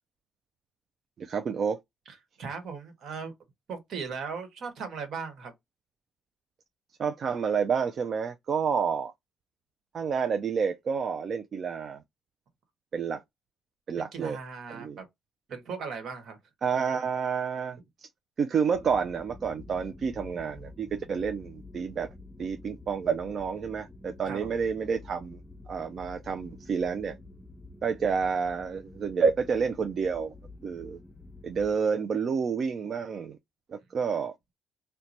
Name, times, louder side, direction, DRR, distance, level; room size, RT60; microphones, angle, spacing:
voice 1, 1.2-1.8 7.0-9.1 9.9-12.0 12.9-13.2 13.9-14.4 14.7-15.0 16.6-18.1 18.4-22.1 22.4-25.4 25.7-27.2 27.8-30.3 30.6-31.0 31.4-33.4 33.7-34.3, right 6 dB, 55° right, 0.4 m, -29 dB
voice 2, 2.4-3.3 3.7-5.5 14.0-15.0 15.5-16.4 24.3-24.5, right 5 dB, 70° right, 1.2 m, -37 dB
sound 1, 18.7-31.8, left 2 dB, 10° left, 0.5 m, -48 dB
2.9 x 2.2 x 3.9 m
cardioid pair, 90°, 0 cm